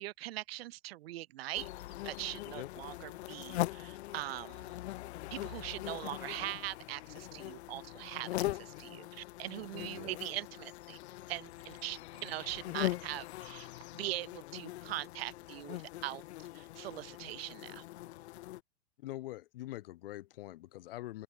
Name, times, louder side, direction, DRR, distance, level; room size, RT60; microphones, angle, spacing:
voice 1, 0.0-1.7 2.0-4.7 5.3-11.0 11.3-13.7 13.9-16.2 16.5-17.8, right 16 dB, 65° right, 0.5 m, -41 dB
sound 1, 1.5-18.6, left 16 dB, 80° left, 0.5 m, -41 dB
voice 2, 9.8-10.2 19.0-21.2, left 16 dB, 60° left, 0.9 m, -44 dB
open air
supercardioid pair, 170°, 33 cm